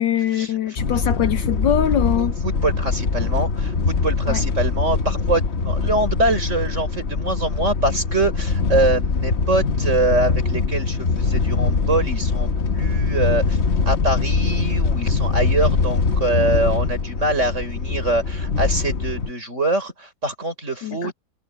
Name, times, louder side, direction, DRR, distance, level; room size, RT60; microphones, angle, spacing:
voice 1, 0.0-2.3 4.3-4.4 20.8-21.1, left 10 dB, 70° left, 1.4 m, -22 dB
sound 1, 0.8-19.3, left 4 dB, 40° left, 1.2 m, -22 dB
voice 2, 2.2-13.6 13.9-21.1, right 2 dB, 35° right, 6.3 m, -24 dB
omnidirectional pair, 2.2 m